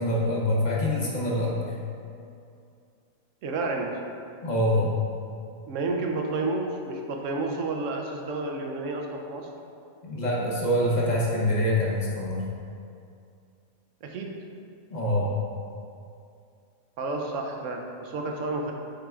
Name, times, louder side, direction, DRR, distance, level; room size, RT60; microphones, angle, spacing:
voice 1, 0.0-1.8 4.4-4.9 10.0-12.5 14.9-15.3, left 1 dB, 35° left, -4 dB, 1.0 m, -25 dB
voice 2, 3.4-3.9 5.7-9.5 14.0-14.3 17.0-18.7, right 3 dB, 70° right, 2 dB, 1.0 m, -30 dB
8.8 x 4.5 x 2.4 m, 2.5 s
omnidirectional pair, 1.4 m